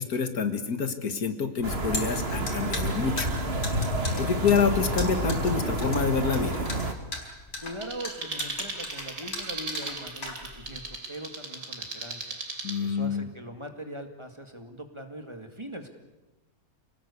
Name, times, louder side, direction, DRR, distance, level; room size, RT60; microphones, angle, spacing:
voice 1, 0.0-3.3 4.2-6.7 12.6-13.3, left 6 dB, 70° left, 8 dB, 2.2 m, -27 dB
sound 1, 1.6-10.8, left 2 dB, 50° left, 4.6 m, -38 dB
sound 2, 1.6-6.9, right 1 dB, 40° right, 2.0 m, -29 dB
voice 2, 7.6-12.3 12.8-15.9, right 1 dB, 20° right, 5 dB, 2.1 m, -41 dB
sound 3, 7.8-12.8, right 3 dB, 65° right, 3.5 m, -37 dB
27.5 x 18.5 x 8.4 m, 1.1 s
omnidirectional pair, 1.7 m